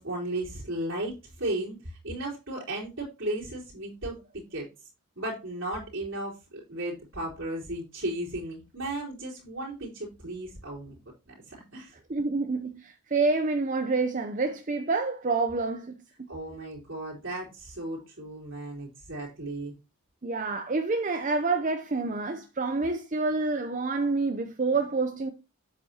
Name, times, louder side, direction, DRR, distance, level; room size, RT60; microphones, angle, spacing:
voice 1, 0.0-4.7 5.2-6.4 6.7-11.0 11.3-11.9 16.3-19.7, right 1 dB, 65° right, 4.1 m, -35 dB
voice 2, 12.1-16.3 20.2-25.3, right 3 dB, 35° right, 0.6 m, -28 dB
8.5 x 8.3 x 2.9 m
head